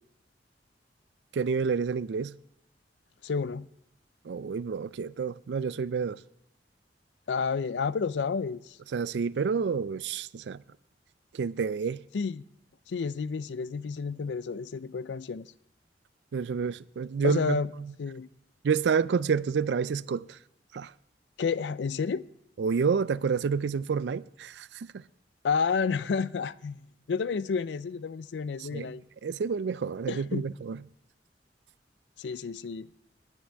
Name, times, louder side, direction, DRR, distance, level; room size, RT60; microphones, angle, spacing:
voice 1, 1.3-2.4 4.2-6.2 8.9-10.6 11.3-12.0 16.3-17.9 18.6-20.4 20.7-20.9 22.6-25.0 28.6-28.9 29.2-30.8, right 5 dB, 75° right, 0.4 m, -29 dB
voice 2, 3.2-3.7 7.3-8.8 12.1-12.4 12.9-15.5 17.2-17.7 18.0-18.3 21.4-22.3 25.4-26.8 27.1-29.0 30.1-30.4 32.2-32.9, left 5 dB, 75° left, 0.4 m, -30 dB
19.5 x 9.9 x 3.4 m
head